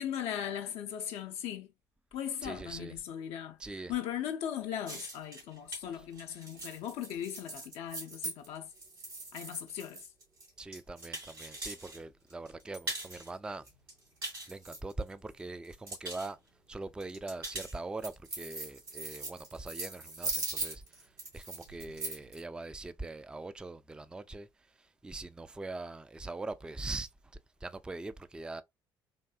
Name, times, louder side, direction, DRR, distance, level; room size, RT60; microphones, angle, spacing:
voice 1, 0.0-1.7 2.1-8.7 9.3-10.1, left 10 dB, 60° left, 0.4 m, -38 dB
voice 2, 2.4-3.0 3.6-3.9 6.0-6.1 10.6-13.6 14.5-16.4 16.7-24.5 24.8-27.1 27.6-28.6, right 3 dB, 10° right, 0.3 m, -42 dB
sound 1, 4.9-12.0 12.3-13.3 13.7-15.3 15.6-16.3 17.0-22.4, right 2 dB, 85° right, 1.4 m, -40 dB
3.5 x 2.6 x 2.2 m
figure-of-eight pair, 50°, 12 cm